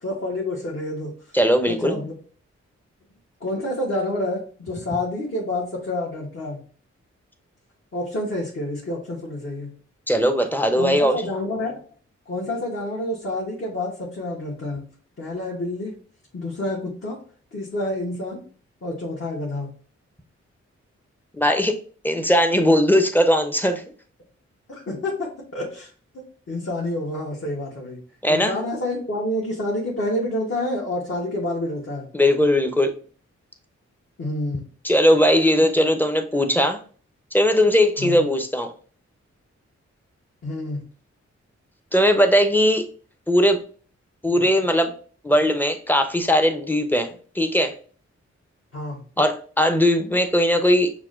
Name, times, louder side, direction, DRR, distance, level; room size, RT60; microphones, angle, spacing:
voice 1, 0.0-1.1 1.7-2.1 3.4-6.6 7.9-9.7 10.7-11.8 12.3-14.8 15.2-16.0 16.3-17.2 17.5-18.4 18.8-19.7 24.7-25.9 26.1-28.0 28.3-32.1 34.2-34.6 38.0-38.2 40.4-40.8 48.7-49.0, left 1 dB, 45° left, -5 dB, 1.3 m, -28 dB
voice 2, 1.3-2.0 10.1-11.3 21.3-21.8 22.0-23.8 28.2-28.5 32.1-32.9 34.8-36.8 37.3-38.7 41.9-42.8 43.3-43.6 44.2-44.9 45.2-47.7 49.2-50.9, equal, 5° left, 7 dB, 0.7 m, -19 dB
5.8 x 2.2 x 2.5 m, 0.42 s
supercardioid pair, 40°, 29 cm